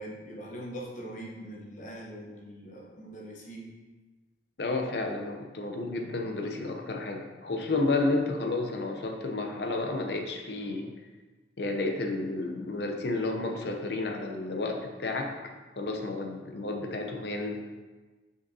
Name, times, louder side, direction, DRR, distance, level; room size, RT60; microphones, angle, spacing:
voice 1, 0.0-3.7, right 1 dB, 45° left, -2 dB, 1.0 m, -42 dB
voice 2, 4.6-10.9 11.6-17.6, left 2 dB, 65° left, 3 dB, 0.7 m, -31 dB
6.4 x 5.3 x 2.8 m, 1.3 s
head